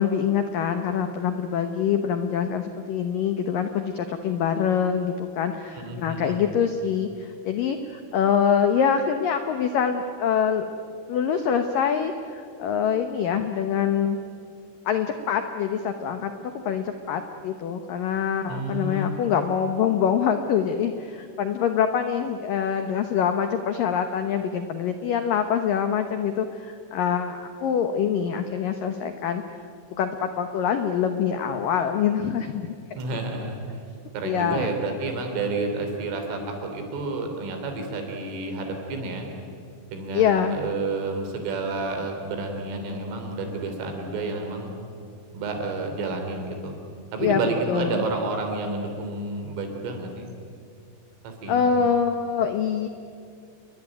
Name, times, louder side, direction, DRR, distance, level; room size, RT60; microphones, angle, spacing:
voice 1, 0.0-10.7 11.1-14.2 14.9-29.4 30.0-33.0 34.2-34.7 40.1-40.6 47.2-47.4 47.7-48.0 51.5-52.9, left 7 dB, 80° left, 7 dB, 1.9 m, -25 dB
voice 2, 5.8-6.4 18.5-19.2 33.0-33.9 34.1-39.3 39.9-44.7 45.3-46.8 47.1-50.3 51.2-51.7, right 3 dB, 85° right, 4 dB, 6.1 m, -30 dB
29.0 x 22.5 x 9.2 m, 2.3 s
omnidirectional pair, 5.6 m